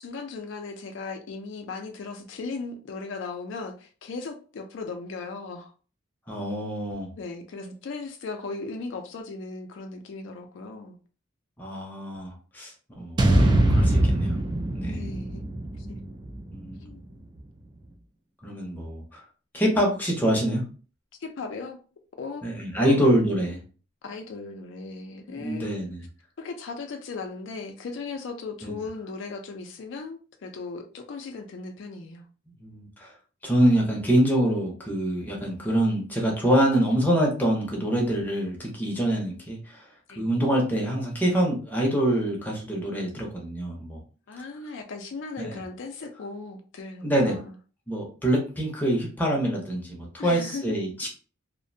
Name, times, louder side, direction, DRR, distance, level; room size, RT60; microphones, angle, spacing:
voice 1, 0.0-5.7 7.2-11.0 14.9-15.4 15.8-16.1 16.8-17.0 21.2-21.8 22.2-23.0 24.0-25.8 26.4-32.2 40.1-40.3 44.3-47.5 50.2-50.7, left 4 dB, 65° left, 5 dB, 0.4 m, -37 dB
voice 2, 6.3-7.1 11.6-14.4 14.7-15.0 16.5-16.8 18.4-19.2 19.5-20.6 22.4-23.6 25.4-26.0 28.6-28.8 32.6-33.1 33.4-39.8 40.2-44.0 45.4-45.6 47.0-47.4 47.9-51.1, right 1 dB, 10° left, -2 dB, 0.6 m, -25 dB
sound 1, 13.2-17.4, right 1 dB, 25° right, 0.3 m, -23 dB
2.5 x 2.0 x 2.6 m, 0.38 s
head